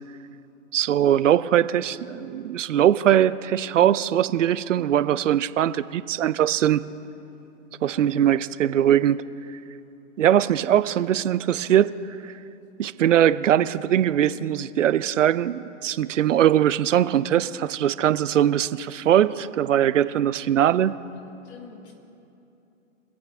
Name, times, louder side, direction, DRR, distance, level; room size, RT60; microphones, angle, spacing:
voice 1, 0.7-6.8 7.8-9.2 10.2-11.9 12.2-12.3 12.8-20.9, right 11 dB, 75° right, 15 dB, 0.6 m, -21 dB
voice 2, 21.4-21.9, left 5 dB, 60° left, 1 dB, 2.6 m, -46 dB
24.5 x 8.6 x 3.6 m, 2.8 s
hypercardioid pair, 120°, 38 cm